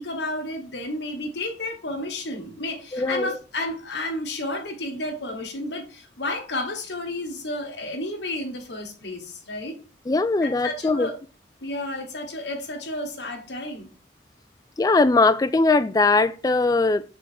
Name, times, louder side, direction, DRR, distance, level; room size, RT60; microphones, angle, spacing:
voice 1, 0.0-9.8 10.4-11.1 11.6-13.9, left 1 dB, 80° left, 1.4 m, -31 dB
voice 2, 2.9-3.3 10.1-11.1 14.8-17.0, left 3 dB, 20° left, 0.3 m, -20 dB
6.1 x 3.9 x 4.3 m
head